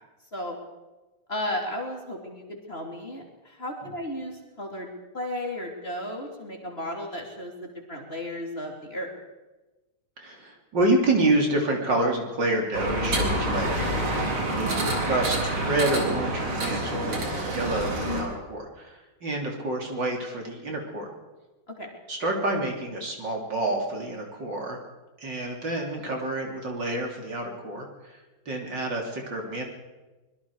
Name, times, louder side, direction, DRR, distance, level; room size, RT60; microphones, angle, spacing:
voice 1, 1.3-9.1 21.8-22.0, left 1 dB, 25° left, 0 dB, 3.3 m, -34 dB
voice 2, 10.2-13.7 14.5-21.1 22.1-24.8 25.2-28.2 28.5-29.6, right 2 dB, 55° right, 1 dB, 3.9 m, -28 dB
sound 1, 12.7-18.2, right 1 dB, 75° right, 4.8 m, -27 dB
24.5 x 22.0 x 4.9 m, 1.1 s
omnidirectional pair, 2.3 m